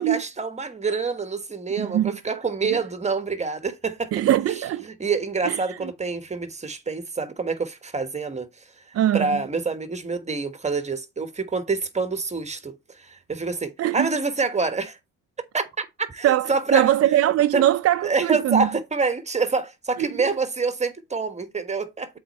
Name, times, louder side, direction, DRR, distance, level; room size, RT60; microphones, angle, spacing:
voice 1, 0.0-4.1 4.5-8.5 9.1-15.0 15.5-16.9 17.5-17.6 18.0-22.2, right 4 dB, 25° right, 1.3 m, -27 dB
voice 2, 1.8-2.1 4.1-4.8 5.5-5.6 8.9-9.3 13.8-14.1 16.2-18.7 20.0-20.3, right 12 dB, 55° right, 0.4 m, -21 dB
7.8 x 4.3 x 4.3 m
cardioid pair, 90°, 30 cm